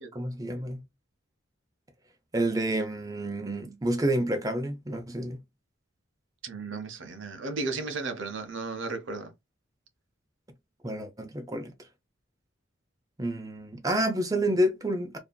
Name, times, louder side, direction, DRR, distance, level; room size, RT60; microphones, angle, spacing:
voice 1, 0.1-0.8 2.3-5.4 10.8-11.7 13.2-15.2, right 1 dB, 15° right, 0.6 m, -29 dB
voice 2, 6.4-9.3, right 3 dB, 65° right, 0.7 m, -34 dB
2.7 x 2.6 x 2.2 m
head